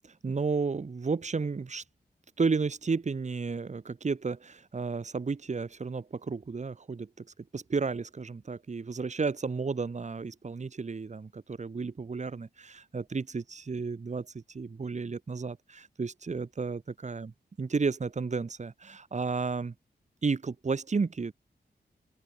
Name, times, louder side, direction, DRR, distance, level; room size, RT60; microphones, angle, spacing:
voice 1, 0.0-1.8 2.4-7.3 7.5-17.3 17.6-19.7 20.2-21.3, right 4 dB, 40° right, 3.1 m, -32 dB
open air
wide cardioid pair, 145°, 17 cm